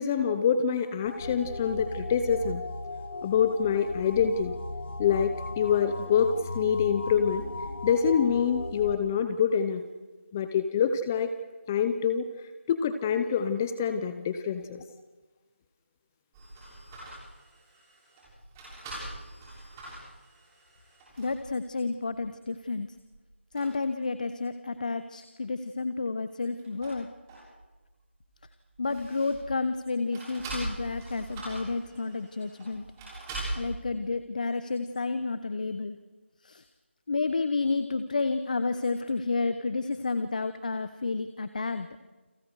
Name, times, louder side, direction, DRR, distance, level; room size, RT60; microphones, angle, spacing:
voice 1, 0.0-2.6 3.2-4.5 5.0-7.4 7.8-9.8 10.3-11.3 11.7-12.3 12.7-14.8, left 7 dB, 10° left, 10 dB, 0.7 m, -26 dB
sound 1, 1.0-9.0, left 2 dB, 60° left, 3.6 m, -37 dB
sound 2, 16.3-21.5 22.1-22.2 22.8-23.2 23.5-23.7 26.3-27.8 28.1-29.6 30.1-33.7, right 2 dB, 10° right, 7.0 m, -42 dB
voice 2, 21.2-22.9 23.5-27.1 28.8-32.8 33.5-36.0 36.4-36.6 37.1-41.9, left 3 dB, 40° left, 11 dB, 1.1 m, -30 dB
30.0 x 27.5 x 4.9 m, 1.2 s
figure-of-eight pair, 170°, 7 cm